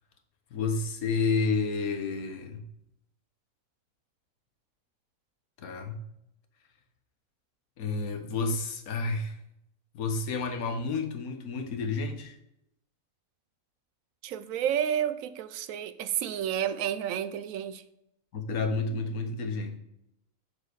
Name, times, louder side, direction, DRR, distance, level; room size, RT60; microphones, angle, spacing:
voice 1, 0.5-2.6 5.6-6.0 7.8-9.4 9.9-12.4 18.3-19.8, left 4 dB, 90° left, 1.5 m, -30 dB
voice 2, 14.2-17.8, right 9 dB, 75° right, 1.0 m, -30 dB
7.0 x 6.7 x 4.8 m
omnidirectional pair, 1.5 m